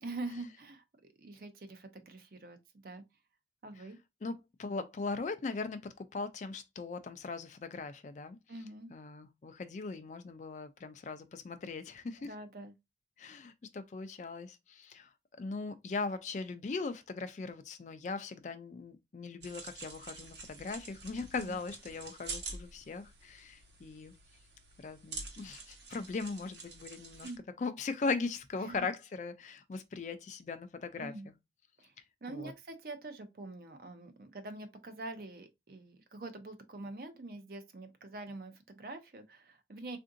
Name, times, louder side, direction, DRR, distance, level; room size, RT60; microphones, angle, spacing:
voice 1, 0.0-0.8 1.2-2.6 2.8-3.0 3.6-4.0 8.5-8.9 12.2-12.7 21.4-21.6 27.2-27.4 28.6-28.9 31.0-31.3 31.8-31.9 32.2-40.0, right 2 dB, 55° right, 0.6 m, -45 dB
voice 2, 4.2-8.4 8.9-12.3 13.2-15.1 15.4-24.2 24.8-27.3 27.6-31.3 32.3-32.5, left 4 dB, 40° left, 0.3 m, -39 dB
sound 1, 19.4-27.4, right 4 dB, 70° right, 1.0 m, -47 dB
3.6 x 2.5 x 2.5 m
head